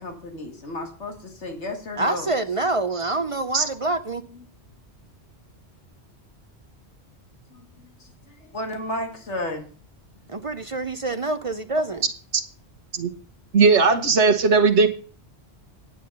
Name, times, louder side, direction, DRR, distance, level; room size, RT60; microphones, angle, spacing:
voice 1, 0.0-2.3 7.5-7.9 8.5-9.7, left 1 dB, 85° left, 4 dB, 2.2 m, -32 dB
voice 2, 2.0-4.2 10.3-12.0, right 2 dB, 40° right, 11 dB, 0.6 m, -26 dB
voice 3, 13.5-14.9, right 4 dB, 85° right, 6 dB, 1.5 m, -17 dB
10.0 x 8.4 x 5.3 m, 0.42 s
omnidirectional pair, 1.1 m